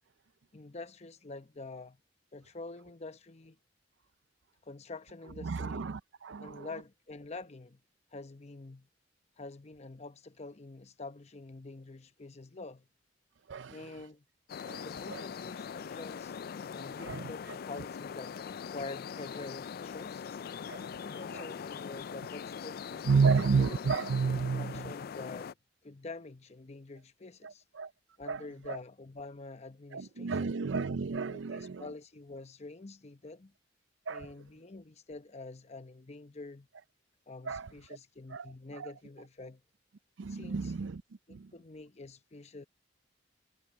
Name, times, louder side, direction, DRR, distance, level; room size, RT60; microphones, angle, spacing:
voice 1, 0.5-2.0 2.3-3.6 4.6-5.9 6.4-7.8 8.1-8.9 9.4-12.9 13.7-14.2 14.8-16.4 16.7-20.2 21.0-23.5 24.3-25.6 25.8-27.6 28.2-30.6 31.3-33.5 34.1-36.7 37.3-39.6 40.3-40.7 41.3-42.7, left 3 dB, 35° left, 0.8 m, -46 dB
voice 2, 5.4-6.7 13.5-13.7 14.7-14.8 17.1-17.2 20.7-20.8 23.1-24.8 27.8-27.9 28.3-28.4 28.7-28.8 29.9-31.8 34.1-34.3 37.5-37.6 38.3-38.5 38.8-38.9 40.2-41.0 41.3-41.5, right 5 dB, 85° right, 0.5 m, -30 dB
sound 1, 14.5-25.5, left 7 dB, 55° left, 0.3 m, -41 dB
head